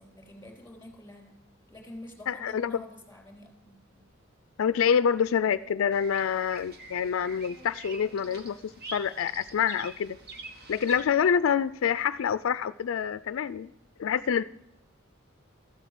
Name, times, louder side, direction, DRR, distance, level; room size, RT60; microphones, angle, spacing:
voice 1, 0.0-1.3 1.7-4.0, left 1 dB, 10° left, 1 dB, 3.6 m, -47 dB
voice 2, 2.3-2.8 4.6-10.2 10.7-13.7 14.0-14.4, left 7 dB, 75° left, 15 dB, 0.4 m, -27 dB
Bird vocalization bird call bird song, 5.9-11.0, right 3 dB, 55° right, 1.6 m, -45 dB
14.0 x 8.0 x 7.5 m, 0.88 s
head